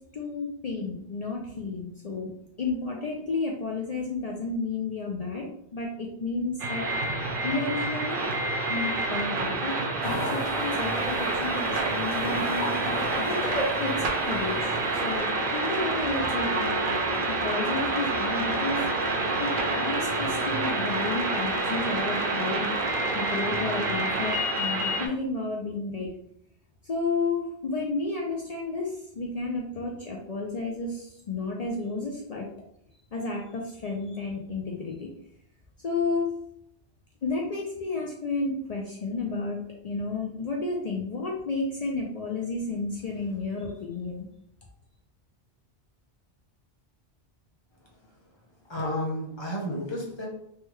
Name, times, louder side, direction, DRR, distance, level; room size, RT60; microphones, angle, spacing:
voice 1, 0.1-2.3 2.6-6.9 7.4-8.3 8.7-9.7 10.0-13.0 13.2-14.8 15.0-16.8 17.3-18.8 19.4-22.8 23.1-26.1 26.8-32.5 33.1-35.1 35.8-36.3 37.2-44.3, left 3 dB, 60° left, -2 dB, 0.4 m, -32 dB
sound 1, 6.6-25.1, right 2 dB, 60° right, 0.6 m, -28 dB
sound 2, 10.0-15.2, left 1 dB, 80° left, 1.4 m, -35 dB
Trumpet, 16.1-22.3, equal, 85° right, 1.0 m, -36 dB
voice 2, 48.7-50.3, left 1 dB, 30° left, -3 dB, 0.7 m, -31 dB
3.4 x 2.2 x 3.0 m, 0.74 s
omnidirectional pair, 1.2 m